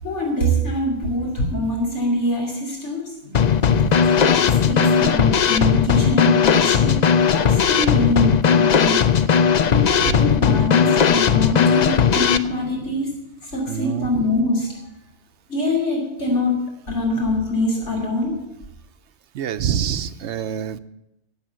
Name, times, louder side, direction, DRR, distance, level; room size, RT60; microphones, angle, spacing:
voice 1, 0.0-3.5 4.2-7.0 7.3-9.1 9.7-13.1 13.4-14.8 15.5-18.4, left 1 dB, 85° left, 0 dB, 3.2 m, -24 dB
Drum kit / Snare drum, 3.3-12.4, left 7 dB, 50° left, 0.6 m, -17 dB
voice 2, 3.6-4.2 10.0-10.4 13.7-14.3 19.3-20.8, right 8 dB, 75° right, 11 dB, 1.0 m, -27 dB
17.0 x 7.4 x 7.6 m, 0.86 s
omnidirectional pair, 1.2 m